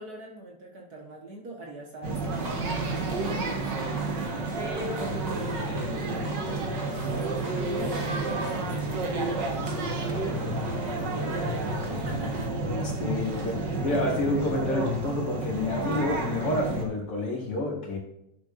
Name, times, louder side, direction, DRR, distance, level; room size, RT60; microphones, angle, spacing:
voice 1, 0.0-2.3 2.8-4.1 4.6-12.5, right 1 dB, 55° right, 0 dB, 1.9 m, -43 dB
sound 1, 2.0-16.9, right 2 dB, 70° right, 2.1 m, -30 dB
sound 2, 2.3-12.5, right 1 dB, 25° right, 1.2 m, -41 dB
voice 2, 13.0-18.0, left 1 dB, 80° left, -2 dB, 2.8 m, -29 dB
11.5 x 7.0 x 2.6 m, 0.81 s
omnidirectional pair, 2.0 m